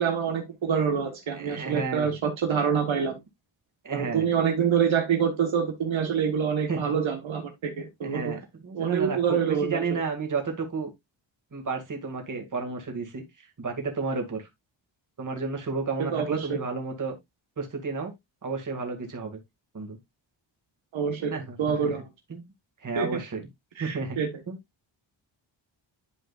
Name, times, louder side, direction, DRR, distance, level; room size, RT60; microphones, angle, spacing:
voice 1, 0.0-3.2 3.9-8.3 8.7-9.8 16.0-16.6 20.9-22.0 22.9-23.2 23.8-24.3, right 7 dB, 75° right, 1.4 m, -26 dB
voice 2, 1.3-2.1 3.8-4.3 6.7-6.8 8.0-10.9 11.5-14.5 15.2-17.2 17.6-18.1 18.4-19.4 19.7-20.0 21.2-21.9 22.3-22.5 22.8-23.4 23.8-24.2 24.5-24.6, right 4 dB, 40° right, 2.2 m, -32 dB
11.0 x 5.1 x 2.4 m
wide cardioid pair, 135°, 47 cm